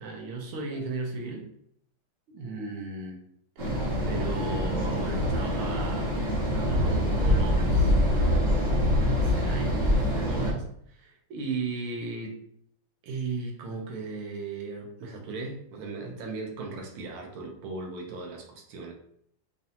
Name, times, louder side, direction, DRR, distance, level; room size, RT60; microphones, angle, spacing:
voice 1, 0.0-1.5 2.3-3.2 4.1-6.2 6.5-12.4 13.0-18.9, right 3 dB, 85° right, 1 dB, 1.7 m, -37 dB
sound 1, 3.6-10.5, equal, 45° right, 1.3 m, -25 dB
5.3 x 2.6 x 2.8 m, 0.69 s
omnidirectional pair, 2.3 m